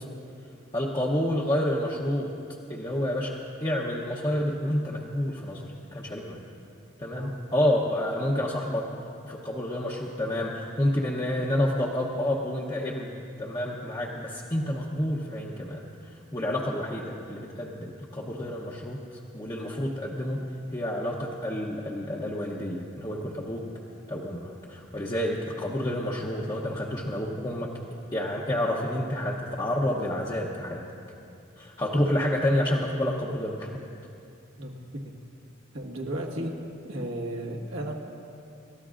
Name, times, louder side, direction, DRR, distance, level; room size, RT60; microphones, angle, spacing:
voice 1, 0.7-2.3 2.7-6.4 7.0-8.9 9.2-13.1 13.4-19.0 19.3-20.4 20.7-23.6 24.1-27.7 28.1-30.8 31.6-33.8, left 1 dB, 20° left, -4 dB, 0.8 m, -29 dB
voice 2, 35.7-36.5 36.8-37.9, right 1 dB, 80° right, -1 dB, 1.7 m, -34 dB
28.0 x 13.5 x 2.5 m, 2.6 s
head